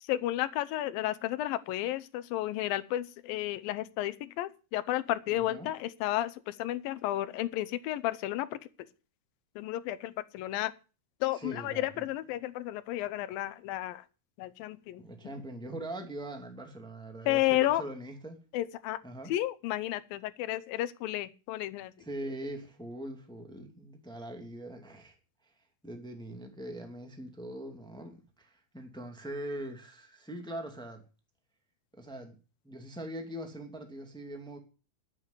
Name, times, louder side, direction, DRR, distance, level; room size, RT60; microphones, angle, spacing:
voice 1, 0.0-8.6 9.6-10.7 11.2-14.0 14.4-15.0 17.3-17.8 18.5-19.0 19.3-21.9, left 15 dB, 85° left, 2.6 m, -32 dB
voice 2, 5.3-5.7 11.3-12.0 15.0-18.4 19.0-19.3 22.0-25.2 25.8-31.1 31.9-32.4 32.6-34.6, right 1 dB, ahead, 1.7 m, -42 dB
11.0 x 8.7 x 8.1 m
omnidirectional pair, 4.0 m